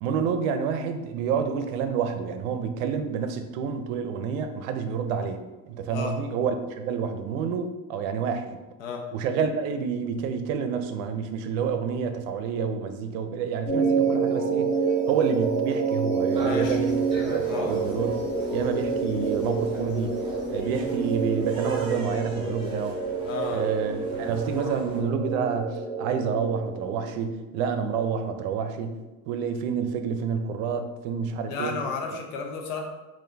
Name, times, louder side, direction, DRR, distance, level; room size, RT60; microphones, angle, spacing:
voice 1, 0.0-5.4 5.7-8.5 9.1-14.7 15.1-16.9 17.3-18.1 18.5-20.2 20.5-23.0 23.5-29.0 29.3-31.8 32.1-32.2, right 6 dB, 75° right, 8 dB, 0.6 m, -28 dB
sound 1, 13.7-27.1, right 4 dB, 35° left, 1.5 m, -28 dB
sound 2, 16.3-25.0, right 1 dB, 15° right, 0.4 m, -39 dB
voice 2, 16.4-16.8 17.4-17.7 23.2-23.6 31.4-32.8, left 4 dB, 85° left, 2 dB, 0.9 m, -32 dB
3.9 x 2.5 x 3.3 m, 1.1 s
cardioid pair, 160°, 40 cm